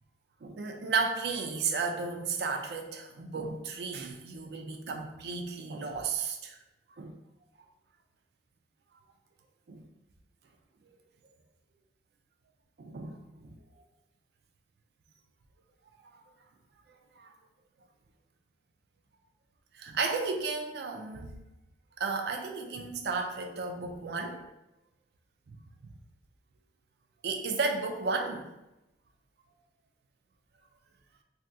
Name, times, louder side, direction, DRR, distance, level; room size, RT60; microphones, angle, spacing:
voice 1, 0.4-6.6 7.0-7.2 9.7-9.8 10.9-11.0 12.8-13.5 17.2-17.3 19.7-21.4 22.0-24.4 25.5-25.6 27.2-28.5, right 4 dB, 65° right, 4 dB, 0.4 m, -33 dB
3.5 x 2.6 x 2.3 m, 0.94 s
head